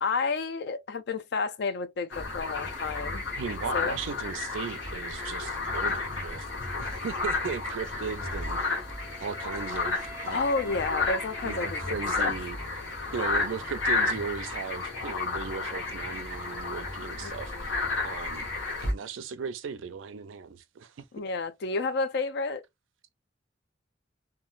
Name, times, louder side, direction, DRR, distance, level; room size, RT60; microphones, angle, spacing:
voice 1, 0.0-3.2 3.7-4.0 10.3-12.4 17.2-17.7 21.1-22.6, left 4 dB, 60° left, 0.4 m, -31 dB
sound 1, 2.1-18.9, left 3 dB, 80° left, 1.0 m, -32 dB
voice 2, 3.3-6.5 6.8-8.7 9.2-10.8 11.4-18.5 18.8-21.1, right 6 dB, 90° right, 0.4 m, -37 dB
Wind instrument woodwind instrument, 8.2-12.4, right 3 dB, 15° right, 0.6 m, -48 dB
3.0 x 2.2 x 2.4 m
head